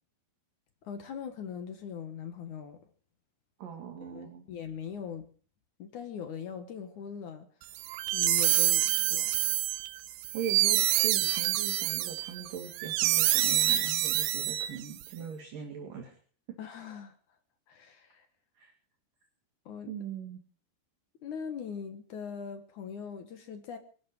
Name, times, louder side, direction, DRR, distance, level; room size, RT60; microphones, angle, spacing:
voice 1, 0.8-2.8 4.1-5.3 5.8-7.5 8.1-9.3 16.6-17.2 17.7-18.3 19.7-19.9 21.2-23.8, left 7 dB, 60° left, 7 dB, 2.1 m, -41 dB
voice 2, 3.6-4.4 10.3-16.2 18.6-18.7 19.9-20.4, right 8 dB, 55° right, 4 dB, 3.5 m, -40 dB
sound 1, 7.8-15.0, right 14 dB, 85° right, 3.3 m, -27 dB
25.0 x 11.5 x 4.8 m, 0.43 s
omnidirectional pair, 5.3 m